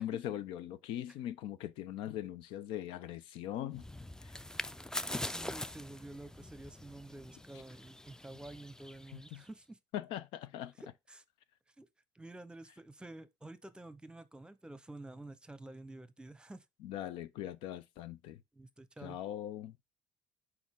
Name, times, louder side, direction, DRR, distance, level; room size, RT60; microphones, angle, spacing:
voice 1, 0.0-3.9 9.1-9.4 9.9-10.7 16.8-18.4 19.0-19.8, left 12 dB, 75° left, 0.6 m, -40 dB
sound 1, 3.7-9.5, left 1 dB, 5° left, 0.4 m, -43 dB
voice 2, 5.1-9.8 10.7-11.2 11.7-11.9 12.1-16.6 18.5-19.2, right 2 dB, 10° right, 0.9 m, -50 dB
6.2 x 4.6 x 3.6 m
supercardioid pair, 75°, 9 cm